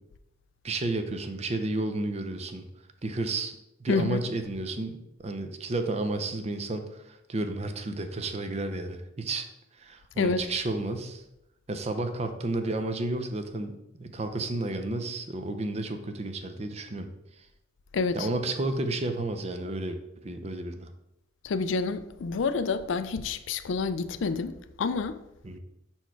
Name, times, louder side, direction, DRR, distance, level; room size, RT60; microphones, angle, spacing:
voice 1, 0.6-2.6 3.0-9.5 9.8-11.2 11.7-13.7 14.0-17.1 18.1-20.0 20.2-20.9 25.4-25.6, right 2 dB, 30° right, 0.5 m, -32 dB
voice 2, 3.9-4.2 10.2-10.4 17.9-18.3 21.4-24.5 24.8-25.2, left 4 dB, 75° left, 0.4 m, -28 dB
5.7 x 4.4 x 4.6 m
head